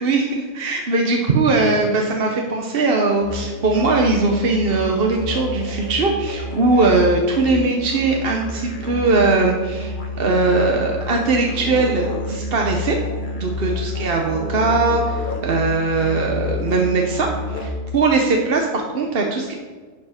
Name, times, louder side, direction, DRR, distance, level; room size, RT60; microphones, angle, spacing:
voice 1, 0.0-13.0 13.4-19.5, right 3 dB, 45° right, 1 dB, 1.0 m, -20 dB
Musical instrument, 3.2-18.0, left 2 dB, 40° left, 1.2 m, -29 dB
11.5 x 5.2 x 5.0 m, 1.5 s
omnidirectional pair, 1.5 m